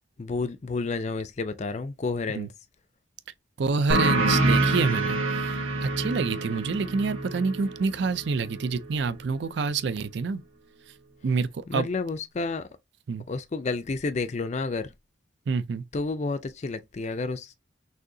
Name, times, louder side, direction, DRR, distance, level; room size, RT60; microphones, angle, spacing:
voice 1, 0.2-2.5 11.7-12.7 13.3-14.9 15.9-17.5, left 3 dB, 35° left, 0.4 m, -30 dB
voice 2, 3.6-10.4 11.2-11.9 13.1-13.2 15.5-15.8, right 4 dB, 60° right, 0.4 m, -27 dB
sound 1, 3.9-9.1, right 2 dB, 90° right, 1.5 m, -26 dB
6.3 x 2.7 x 2.7 m
head